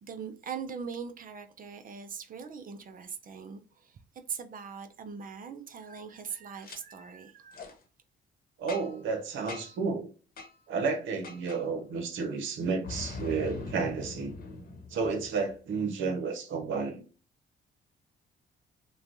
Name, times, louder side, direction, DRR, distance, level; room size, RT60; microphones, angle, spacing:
voice 1, 0.0-4.0 4.3-7.7, right 6 dB, 45° right, 0.5 m, -41 dB
Boom, 6.6-6.8 7.5-7.7 8.7-9.1 9.5-9.8 10.4-10.5 11.2-11.6 12.8-15.5, left 3 dB, 50° left, 0.9 m, -41 dB
voice 2, 8.6-10.1 10.7-14.3 14.9-17.0, right 4 dB, 80° right, 0.9 m, -31 dB
3.1 x 2.2 x 2.5 m
cardioid pair, 90°, 20 cm